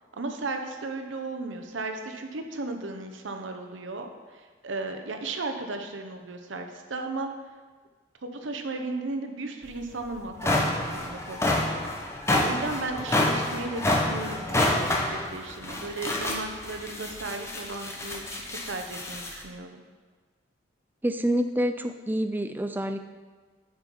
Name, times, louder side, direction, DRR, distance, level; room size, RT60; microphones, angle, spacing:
voice 1, 0.1-7.3 8.2-11.8 12.4-19.8, right 3 dB, 85° right, 5 dB, 0.8 m, -35 dB
sound 1, 9.7-9.8 10.2-19.4, left 1 dB, 15° left, 0.7 m, -28 dB
voice 2, 21.0-23.0, equal, 10° right, 8 dB, 0.3 m, -27 dB
7.4 x 5.6 x 4.6 m, 1.4 s
head